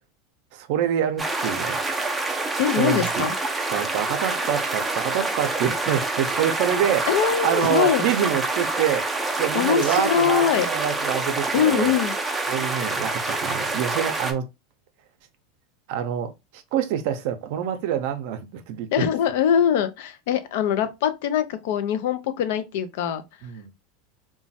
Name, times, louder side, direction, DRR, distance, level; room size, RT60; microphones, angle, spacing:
voice 1, 0.5-1.8 2.8-3.3 3.7-9.1 9.4-11.9 12.5-14.5 15.9-18.9 23.4-23.7, right 9 dB, 65° right, 0.5 m, -26 dB
sound 1, 1.2-14.3, right 3 dB, 10° right, 0.5 m, -27 dB
voice 2, 2.6-3.3 7.1-8.1 9.5-10.7 11.5-12.1 18.9-23.2, left 9 dB, 75° left, 0.4 m, -22 dB
3.0 x 2.2 x 2.6 m
supercardioid pair, 130°, 0 cm